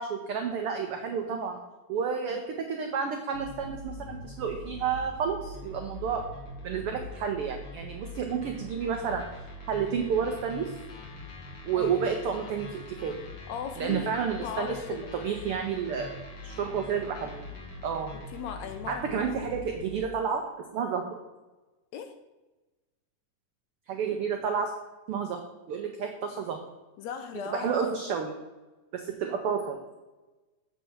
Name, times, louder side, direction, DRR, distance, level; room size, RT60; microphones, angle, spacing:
voice 1, 0.0-1.6 1.9-6.2 6.6-9.2 9.7-10.7 11.6-13.2 13.8-17.4 17.8-18.1 18.9-20.4 20.7-21.2 23.9-24.7 25.1-25.4 25.7-26.6 27.5-28.3 28.9-29.8, right 6 dB, 90° right, 4 dB, 1.2 m, -30 dB
sound 1, 3.3-20.1, left 2 dB, 50° left, 1.6 m, -43 dB
voice 2, 13.5-15.1 18.1-19.8 21.9-22.1 27.0-28.0, left 7 dB, 75° left, 7 dB, 1.7 m, -38 dB
7.5 x 4.6 x 6.9 m, 1.1 s
omnidirectional pair, 3.5 m